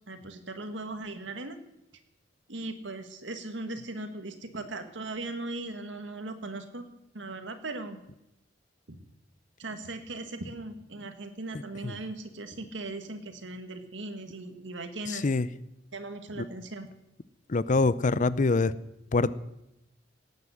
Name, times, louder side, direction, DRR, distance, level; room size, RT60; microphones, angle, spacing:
voice 1, 0.1-1.6 2.5-6.8 7.1-8.0 8.9-9.0 9.6-15.2 15.9-16.9, right 2 dB, 70° right, 8 dB, 1.9 m, -38 dB
voice 2, 11.5-11.9 15.1-15.5 16.4-16.5 17.5-18.7 19.1-19.3, left 3 dB, 45° left, 17 dB, 0.6 m, -25 dB
18.5 x 9.4 x 7.9 m, 0.89 s
head